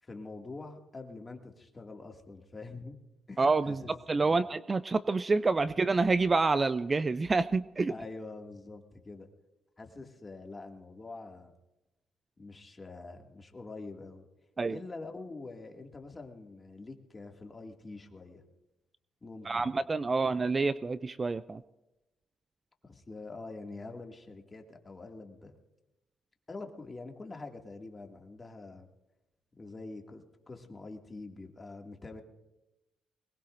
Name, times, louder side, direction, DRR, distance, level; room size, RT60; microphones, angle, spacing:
voice 1, 0.0-3.0 3.3-3.9 4.2-4.4 7.9-9.3 9.8-11.5 12.4-14.3 14.7-18.4 19.2-19.7 22.8-25.5 26.5-28.9 29.6-32.2, left 3 dB, 25° left, 2 dB, 2.2 m, -45 dB
voice 2, 3.4-7.9 14.6-14.8 19.4-21.6, right 3 dB, 30° right, 14 dB, 0.4 m, -28 dB
22.5 x 20.0 x 2.6 m, 1.0 s
cardioid pair, 90°, 0 cm